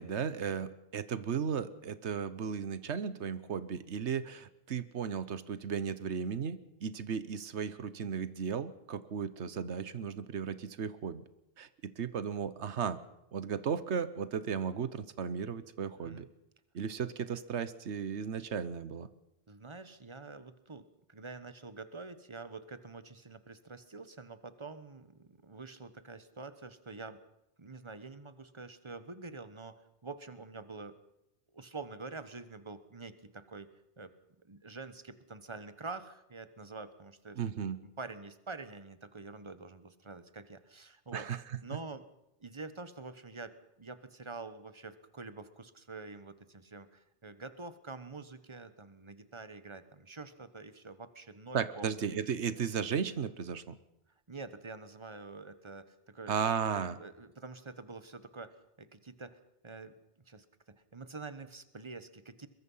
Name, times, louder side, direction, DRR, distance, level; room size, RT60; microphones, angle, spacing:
voice 1, 0.0-11.2 11.6-13.0 13.3-16.3 16.7-19.1 37.4-37.8 41.1-41.4 51.5-53.8 56.3-57.0, right 7 dB, 90° right, 15 dB, 1.3 m, -35 dB
voice 2, 16.0-16.3 19.5-27.2 27.6-31.0 31.5-33.7 34.0-34.1 34.4-37.4 37.8-41.3 41.6-42.0 42.4-43.5 43.8-52.0 54.3-56.4 56.7-58.5 58.8-59.4 59.6-59.9 60.3-62.5, right 3 dB, 25° right, 12 dB, 1.2 m, -46 dB
22.5 x 21.5 x 5.6 m, 0.86 s
omnidirectional pair, 1.1 m